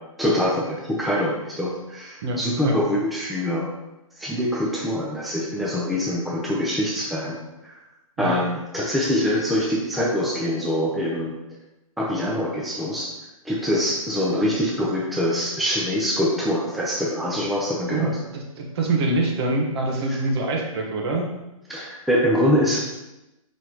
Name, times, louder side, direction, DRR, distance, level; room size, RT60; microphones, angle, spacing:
voice 1, 0.2-3.7 4.2-7.4 7.6-7.8 8.2-11.4 12.0-13.1 13.4-18.1 20.1-20.2 21.7-22.8, equal, ahead, -5 dB, 0.7 m, -24 dB
voice 2, 2.2-2.8 8.2-8.3 17.9-21.3, right 2 dB, 45° right, 1 dB, 1.4 m, -25 dB
5.9 x 5.3 x 3.0 m, 0.97 s
hypercardioid pair, 130°, 18 cm